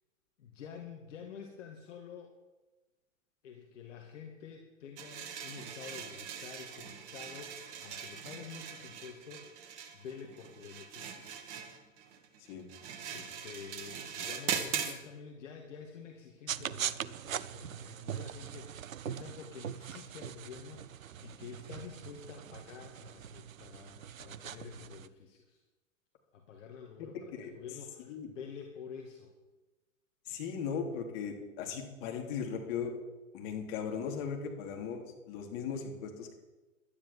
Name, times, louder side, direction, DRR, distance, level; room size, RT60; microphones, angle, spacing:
voice 1, 0.4-2.3 3.4-11.3 12.5-12.6 13.1-25.6 26.3-29.3, left 6 dB, 65° left, 3 dB, 2.2 m, -49 dB
sound 1, 5.0-15.0, right 7 dB, 40° right, 2.3 m, -41 dB
sound 2, 16.5-25.1, right 9 dB, 80° right, 0.8 m, -42 dB
voice 2, 30.3-32.9 33.3-36.3, left 6 dB, 45° left, 3 dB, 3.4 m, -38 dB
12.0 x 10.5 x 7.4 m, 1.1 s
hypercardioid pair, 110°, 40 cm